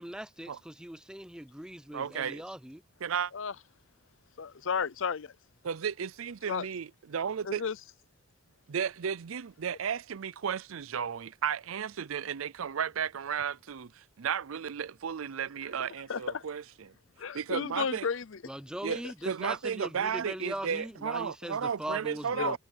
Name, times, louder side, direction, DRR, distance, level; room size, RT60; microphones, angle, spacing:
voice 1, 0.0-2.8 18.5-22.6, right 1 dB, 5° right, 0.6 m, -40 dB
voice 2, 1.9-2.4 3.0-3.3 5.6-7.6 8.7-16.9 17.3-18.1 18.8-22.6, right 7 dB, 80° right, 0.5 m, -34 dB
voice 3, 4.4-5.3 6.5-6.7 7.4-7.8 16.1-16.4 17.2-18.4 22.3-22.6, left 6 dB, 65° left, 0.6 m, -33 dB
head